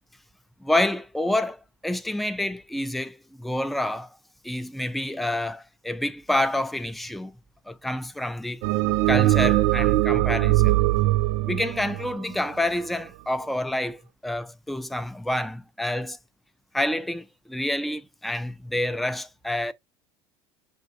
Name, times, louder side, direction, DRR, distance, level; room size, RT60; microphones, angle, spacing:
voice 1, 0.6-4.1 4.4-7.3 7.7-8.6 9.1-10.8 11.5-16.2 16.7-19.7, left 1 dB, ahead, 0.4 m, -28 dB
sound 1, 8.6-13.0, right 17 dB, 65° right, 0.4 m, -21 dB
5.2 x 2.5 x 2.5 m
hypercardioid pair, 80°, 13 cm